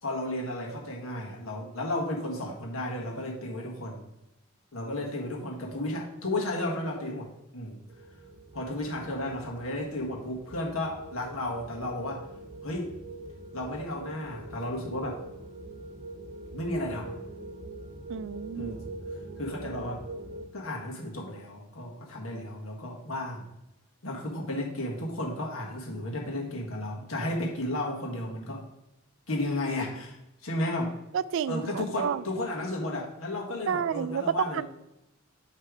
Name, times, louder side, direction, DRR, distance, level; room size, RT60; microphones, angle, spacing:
voice 1, 0.0-4.0 4.7-7.8 8.5-12.3 12.6-12.9 13.5-15.2 16.5-17.1 18.6-18.8 19.4-20.0 20.5-23.5 24.0-28.6 29.3-30.2 30.4-30.9 31.5-34.6, left 1 dB, 75° left, -1 dB, 1.5 m, -33 dB
sound 1, 7.9-20.4, right 2 dB, 45° right, 1.0 m, -43 dB
voice 2, 18.1-18.8 31.1-32.2 33.7-34.6, right 8 dB, 60° right, 16 dB, 0.3 m, -30 dB
8.0 x 3.3 x 5.0 m, 0.87 s
head